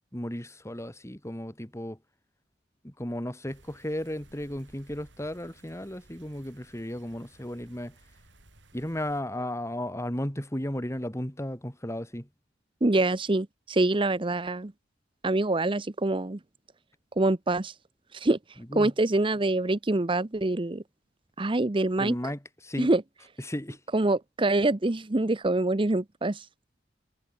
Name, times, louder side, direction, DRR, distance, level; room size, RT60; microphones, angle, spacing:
voice 1, 0.1-2.0 2.8-7.9 8.7-12.3 18.6-18.9 22.0-22.9 23.4-23.8, left 1 dB, 15° left, 3.0 m, -34 dB
sound 1, 3.5-9.2, right 2 dB, 75° right, 7.9 m, -58 dB
voice 2, 12.8-14.7 15.2-16.4 17.2-17.7 18.1-18.4 18.7-20.8 21.4-22.1 22.8-23.0 23.9-26.5, right 2 dB, 25° right, 0.8 m, -25 dB
head